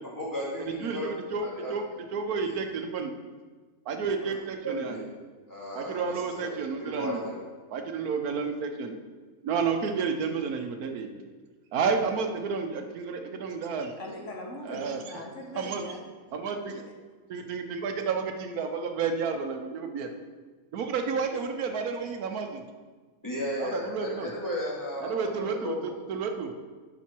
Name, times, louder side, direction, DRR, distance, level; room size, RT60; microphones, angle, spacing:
voice 1, 0.0-1.1 1.4-1.7 2.5-2.6 4.2-4.4 4.6-5.1 5.5-7.4 23.2-25.8, left 1 dB, 15° left, -6 dB, 2.3 m, -35 dB
voice 2, 0.7-1.9 2.1-3.1 3.9-5.0 5.7-7.2 7.7-9.0 9.4-11.2 11.7-13.9 14.7-15.0 15.5-15.8 16.3-16.9 17.3-20.1 20.7-22.6 23.6-24.3 25.0-26.5, right 5 dB, 85° right, 5 dB, 1.3 m, -31 dB
voice 3, 14.0-16.0, left 1 dB, 55° left, 0 dB, 1.5 m, -40 dB
11.5 x 5.0 x 4.5 m, 1.4 s
omnidirectional pair, 1.5 m